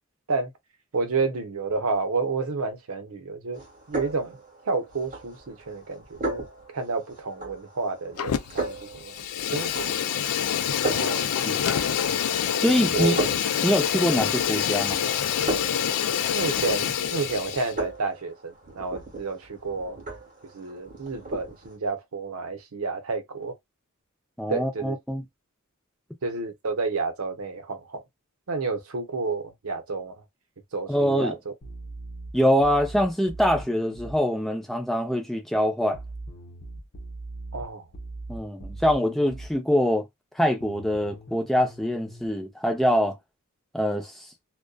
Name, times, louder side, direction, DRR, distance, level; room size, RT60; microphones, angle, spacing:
voice 1, 0.9-3.6 3.9-4.4 4.7-6.4 6.7-9.1 9.5-9.9 10.8-11.3 12.9-13.2 16.3-20.0 20.5-23.6 24.5-25.0 26.2-28.0 28.5-30.2 30.7-31.5 37.5-37.8, right 4 dB, 70° right, 0.7 m, -30 dB
sound 1, 3.5-21.8, right 2 dB, 40° right, 1.1 m, -37 dB
Fire, 8.2-8.7 9.0-17.7, left 9 dB, 90° left, 0.4 m, -26 dB
voice 2, 12.6-13.2 13.6-15.0 24.4-25.2 30.9-31.4 32.3-36.0 38.3-40.1 40.4-43.2 43.7-44.3, equal, ahead, 0.5 m, -24 dB
sound 2, 31.6-34.2 35.9-39.6 40.6-42.3, right 2 dB, 55° left, 0.7 m, -40 dB
2.5 x 2.2 x 2.2 m
head